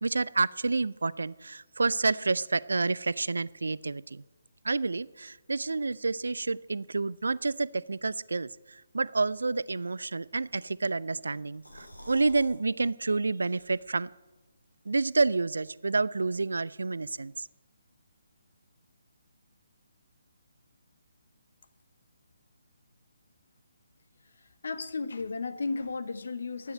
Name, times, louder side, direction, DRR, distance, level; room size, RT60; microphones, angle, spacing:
voice 1, 0.0-4.2 4.6-8.5 8.9-14.1 14.9-17.3, right 3 dB, 70° right, 20 dB, 0.4 m, -29 dB
sound 1, 11.3-12.6 12.9-13.0 13.4-14.1, equal, 85° left, 2.8 m, -49 dB
voice 2, 24.2-26.7, left 4 dB, 60° left, 12 dB, 0.9 m, -35 dB
11.0 x 9.0 x 8.1 m, 1.1 s
figure-of-eight pair, 140°, 0 cm